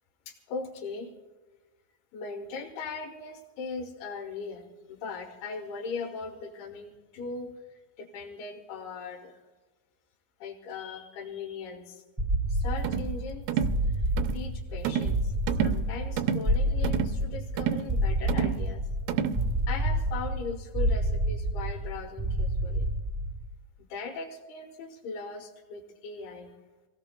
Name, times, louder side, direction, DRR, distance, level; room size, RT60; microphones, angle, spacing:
voice 1, 0.3-1.1 2.1-7.5 8.0-9.4 10.4-12.0 12.5-15.3 15.6-18.8 19.7-22.9 23.8-26.5, left 4 dB, 85° left, 1 dB, 3.2 m, -39 dB
sound 1, 12.2-23.5, right 1 dB, ahead, 1.1 m, -29 dB
sound 2, 12.8-13.1 13.5-13.8 14.2-14.4 14.8-15.2 15.5-15.8 16.2-16.5 16.8-17.2 17.6-17.9 18.3-18.6 19.1-19.4, right 8 dB, 85° right, 2.5 m, -29 dB
27.5 x 17.0 x 2.2 m, 1.2 s
omnidirectional pair, 4.3 m